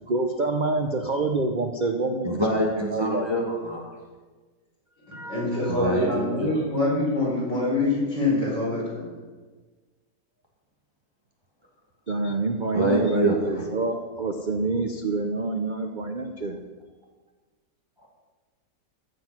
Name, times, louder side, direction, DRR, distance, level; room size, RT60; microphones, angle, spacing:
voice 1, 0.1-3.3 5.1-5.8 12.1-16.6, right 3 dB, 45° right, 4 dB, 0.6 m, -27 dB
voice 2, 2.2-3.9 5.7-6.6 12.7-13.4 18.0-18.1, equal, 15° right, -2 dB, 2.0 m, -25 dB
voice 3, 5.3-9.1, left 2 dB, 80° left, -5 dB, 5.3 m, -25 dB
14.0 x 7.6 x 6.0 m, 1.3 s
omnidirectional pair, 1.9 m